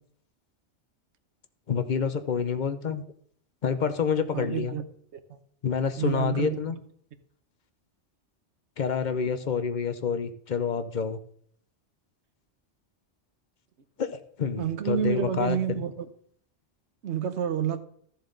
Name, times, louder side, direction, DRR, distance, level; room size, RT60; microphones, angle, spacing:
voice 1, 1.7-3.0 3.6-4.7 5.6-6.8 8.8-11.2 14.0-15.8, left 6 dB, 45° left, 11 dB, 0.8 m, -28 dB
voice 2, 4.3-4.8 5.1-5.4 6.0-6.6 14.6-16.1 17.0-17.8, right 8 dB, 75° right, 10 dB, 1.2 m, -29 dB
13.5 x 7.1 x 3.8 m, 0.64 s
omnidirectional pair, 1.2 m